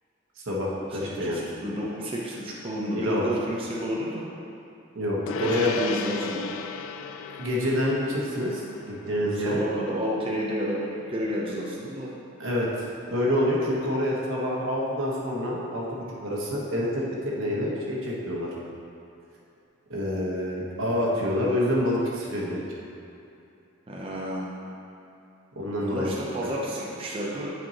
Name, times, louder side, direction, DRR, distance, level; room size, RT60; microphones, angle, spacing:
voice 1, 0.4-1.4 2.9-3.2 4.9-5.9 7.4-9.6 12.4-18.5 19.9-22.6 25.5-26.1 26.4-26.5, left 1 dB, 85° right, -4 dB, 1.2 m, -27 dB
voice 2, 0.9-4.2 5.3-6.5 9.2-12.1 23.9-24.5 25.8-27.5, equal, 25° right, -5 dB, 0.7 m, -31 dB
Gong, 5.3-15.0, left 6 dB, 85° left, 0.3 m, -39 dB
9.0 x 4.5 x 2.9 m, 2.8 s
head